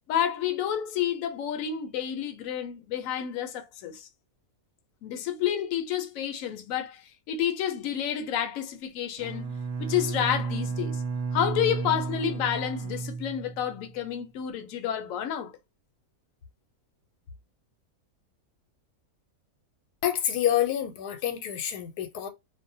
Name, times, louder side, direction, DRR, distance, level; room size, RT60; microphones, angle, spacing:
voice 1, 0.1-4.1 5.0-11.0 11.3-15.5, left 9 dB, 70° left, 0.9 m, -30 dB
Bowed string instrument, 9.2-13.9, right 4 dB, 75° right, 1.0 m, -33 dB
voice 2, 20.0-22.3, left 11 dB, 90° left, 1.2 m, -27 dB
2.6 x 2.1 x 2.6 m
omnidirectional pair, 1.6 m